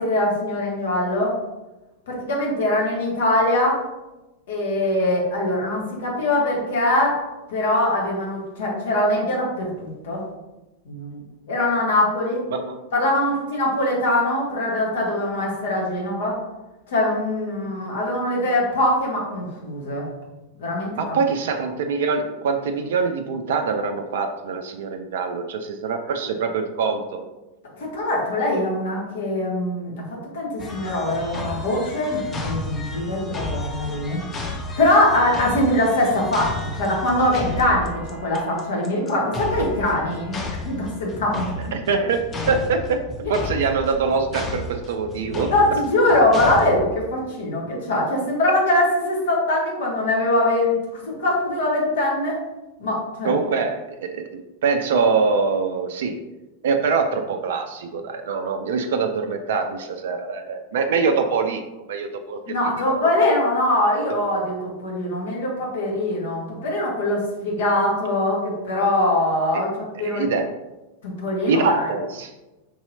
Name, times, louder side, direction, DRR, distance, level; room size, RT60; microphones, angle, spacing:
voice 1, 0.0-1.3 2.1-3.8 4.5-7.2 7.5-10.2 10.8-11.2 11.5-12.4 12.9-16.4 16.9-20.1 20.6-21.2 27.8-29.9 30.3-34.2 34.8-41.7 43.2-43.3 45.5-52.4 52.8-53.3 62.5-70.3 71.0-71.9, left 1 dB, 55° left, -3 dB, 1.2 m, -22 dB
voice 2, 20.9-27.2 41.7-43.0 43.3-45.5 53.2-56.2 56.6-62.4 69.9-70.5 71.5-72.3, right 5 dB, 55° right, 6 dB, 0.3 m, -24 dB
sound 1, 30.6-46.8, left 2 dB, 25° left, 0.6 m, -33 dB
4.5 x 2.8 x 2.7 m, 1.0 s
figure-of-eight pair, 90°, 0 cm